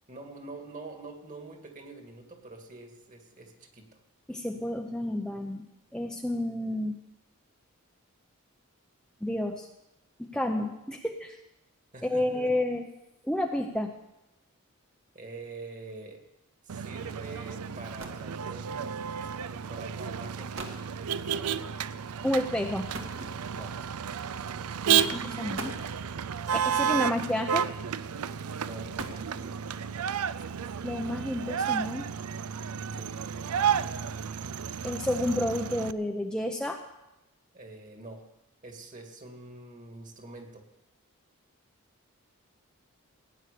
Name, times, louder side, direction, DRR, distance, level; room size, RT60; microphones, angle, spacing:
voice 1, 0.1-3.9 11.9-12.5 15.1-16.2 16.6-18.9 19.5-21.1 23.5-23.8 28.6-29.6 32.9-33.2 37.5-38.3 38.6-40.7, right 3 dB, 35° right, 4 dB, 2.1 m, -45 dB
voice 2, 4.3-5.6 5.9-7.0 9.2-9.7 10.2-11.4 12.0-12.8 13.2-13.9 22.2-22.9 24.9-25.7 26.5-27.7 30.8-32.1 34.8-36.8, left 1 dB, 5° left, 2 dB, 0.6 m, -30 dB
Motor vehicle (road), 16.7-35.9, right 8 dB, 85° right, 0.5 m, -32 dB
sound 1, 17.7-18.4 19.4-19.6 20.2-20.3 20.5-20.9 22.9-23.8 24.7-24.9 25.4-26.0 27.3-27.8 28.6-29.7, right 2 dB, 60° right, 1.9 m, -42 dB
17.0 x 9.7 x 6.8 m, 0.93 s
head